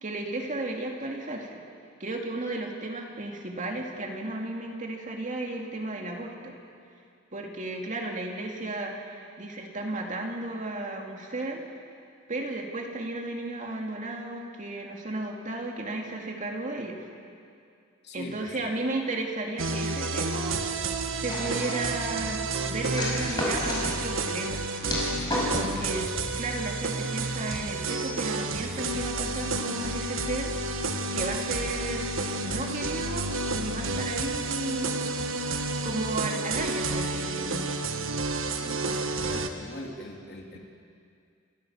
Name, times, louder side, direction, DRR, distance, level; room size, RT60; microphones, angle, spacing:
voice 1, 0.0-1.6 2.0-6.5 7.3-11.6 12.3-17.1 18.1-20.7 21.1-24.7 25.5-26.1 26.4-30.5 31.1-32.1 32.4-34.9 35.8-37.7, right 2 dB, 40° right, 1 dB, 2.5 m, -34 dB
voice 2, 18.0-18.6 38.6-40.6, equal, 55° left, 0 dB, 3.0 m, -41 dB
sound 1, 19.6-39.5, right 3 dB, 75° right, 1.4 m, -30 dB
sound 2, 21.3-22.0 23.0-23.9 24.8-25.7, left 1 dB, 20° left, 5.3 m, -31 dB
29.0 x 15.5 x 7.3 m, 2.4 s
head